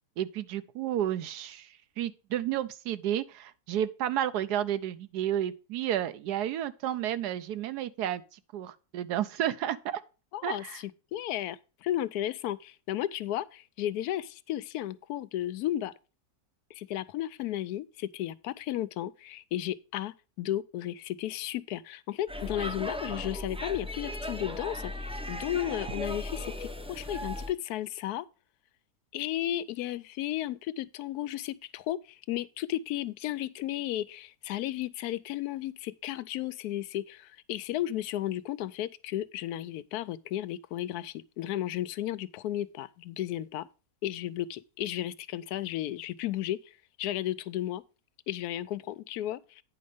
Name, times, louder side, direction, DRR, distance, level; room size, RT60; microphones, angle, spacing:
voice 1, 0.2-1.7 2.0-10.0 10.4-10.8, right 11 dB, 85° right, 1.2 m, -31 dB
voice 2, 10.3-15.9 16.7-28.3 29.1-43.7 44.0-46.6 47.0-47.8 48.3-49.6, left 13 dB, 80° left, 1.1 m, -34 dB
Speech / Shout / Subway metro underground, 22.3-27.5, left 1 dB, 10° right, 0.3 m, -37 dB
9.4 x 5.3 x 4.9 m
omnidirectional pair, 1.7 m